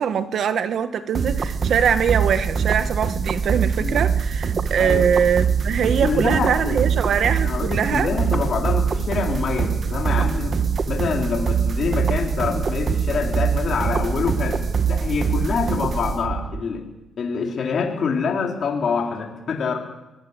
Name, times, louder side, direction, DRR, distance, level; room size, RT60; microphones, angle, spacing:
voice 1, 0.0-8.1, right 7 dB, 65° right, 1.7 m, -22 dB
sound 1, 1.1-16.6, right 6 dB, 45° right, 1.4 m, -23 dB
voice 2, 4.8-5.1 6.0-7.0 7.4-10.6 10.9-16.8 17.2-19.8, left 5 dB, 55° left, 3.9 m, -26 dB
23.0 x 17.0 x 8.1 m
cardioid pair, 90°, 0 cm